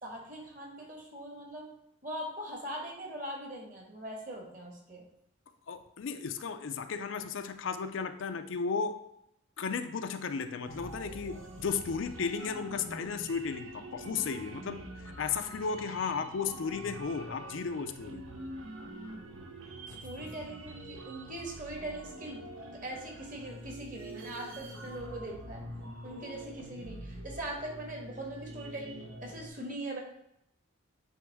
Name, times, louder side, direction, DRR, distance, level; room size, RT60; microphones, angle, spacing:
voice 1, 0.0-1.7 2.0-5.0 19.8-22.4 22.8-25.6 26.0-30.0, right 1 dB, 40° right, 0 dB, 1.5 m, -41 dB
voice 2, 5.7-9.0 9.6-18.2, left 5 dB, 70° left, 9 dB, 0.4 m, -34 dB
sound 1, 10.7-29.5, right 1 dB, 80° right, 0.9 m, -46 dB
9.2 x 3.5 x 3.5 m, 0.79 s
head